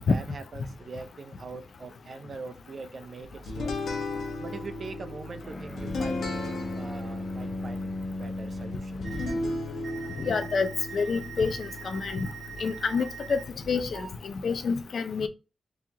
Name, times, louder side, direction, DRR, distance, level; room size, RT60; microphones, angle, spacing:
voice 1, 0.0-3.8 4.4-6.2 6.7-9.1, right 4 dB, 55° right, 0.5 m, -42 dB
sound 1, 3.5-14.1, left 2 dB, 85° left, 1.1 m, -36 dB
Bowed string instrument, 5.4-9.5, left 2 dB, 20° left, 0.7 m, -36 dB
sound 2, 9.0-9.3 9.8-13.4 13.9-14.1, right 8 dB, 70° right, 1.5 m, -43 dB
voice 2, 10.2-12.3 12.6-13.4 13.7-15.3, left 5 dB, 65° left, 0.6 m, -28 dB
3.8 x 3.0 x 2.8 m
cardioid pair, 75°, 0 cm